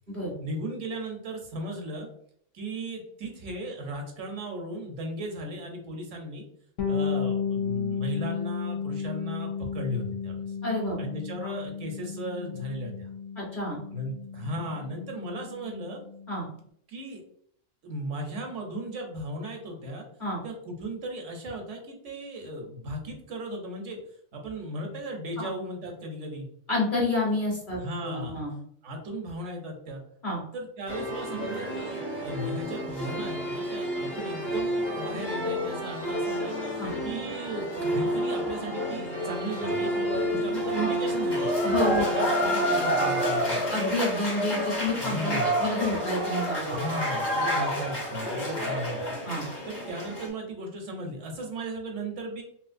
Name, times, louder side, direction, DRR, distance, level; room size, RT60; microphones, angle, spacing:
voice 1, 0.4-2.1 2.5-6.4 6.9-10.5 11.0-13.1 13.9-16.0 16.9-17.2 17.8-20.0 20.4-24.0 24.3-26.5 27.8-28.4 28.8-30.0 30.5-41.5 42.0-43.6 45.0-45.5 46.7-49.2 49.7-52.4, right 1 dB, 75° right, 2 dB, 1.0 m, -36 dB
Bass guitar, 6.8-16.4, left 6 dB, 85° left, 1.1 m, -33 dB
voice 2, 10.6-11.0 11.4-11.5 13.3-13.8 16.3-16.4 20.2-20.4 25.4-25.5 26.7-28.5 30.2-30.4 36.8-36.9 41.6-42.1 43.7-46.8 49.2-49.4, left 1 dB, 40° left, -4 dB, 1.4 m, -29 dB
sound 1, 30.9-50.3, equal, 20° left, 0.8 m, -29 dB
3.1 x 2.7 x 2.5 m, 0.66 s
omnidirectional pair, 1.3 m